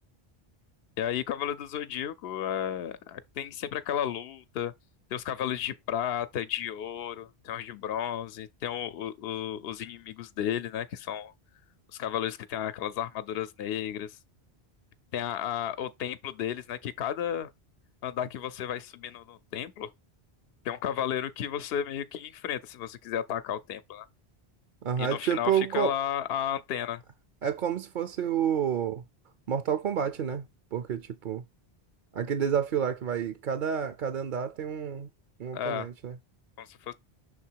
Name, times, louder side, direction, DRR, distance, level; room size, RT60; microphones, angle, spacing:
voice 1, 1.0-4.7 5.1-11.3 11.9-14.2 15.1-17.5 18.0-19.9 20.6-24.1 25.0-27.0 35.5-35.9 36.6-36.9, left 10 dB, 75° left, 0.8 m, -33 dB
voice 2, 24.8-25.9 27.4-29.0 29.5-30.4 30.7-31.4 32.1-35.1 35.4-36.2, right 8 dB, 55° right, 0.7 m, -29 dB
6.5 x 3.5 x 4.5 m
omnidirectional pair, 1.1 m